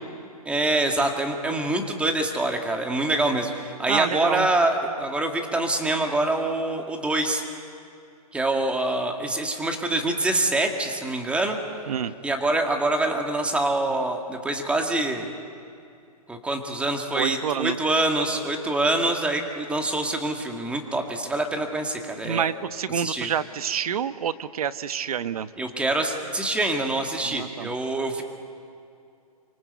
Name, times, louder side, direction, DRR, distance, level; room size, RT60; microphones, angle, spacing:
voice 1, 0.5-7.4 8.3-11.6 12.2-15.3 16.3-22.5 22.9-23.3 25.6-28.2, right 2 dB, 5° right, 3 dB, 2.1 m, -25 dB
voice 2, 3.9-4.5 11.9-12.1 17.1-17.8 22.2-25.5 27.2-27.7, right 8 dB, 70° right, 13 dB, 1.1 m, -28 dB
27.5 x 25.0 x 8.2 m, 2.5 s
hypercardioid pair, 145°, 20 cm